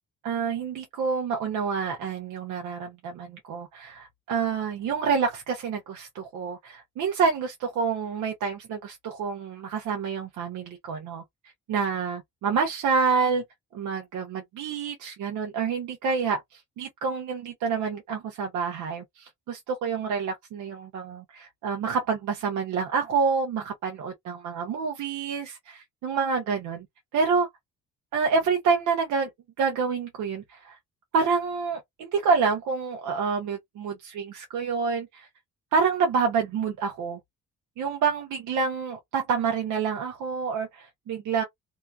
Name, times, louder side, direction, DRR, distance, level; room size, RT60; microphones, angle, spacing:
voice 1, 0.2-11.2 11.7-13.4 13.7-26.9 27.1-27.5 28.1-29.3 29.6-30.8 31.1-35.3 35.7-37.2 37.8-41.4, right 5 dB, 80° right, 0.8 m, -28 dB
2.9 x 2.3 x 2.2 m
cardioid pair, 90°, 30 cm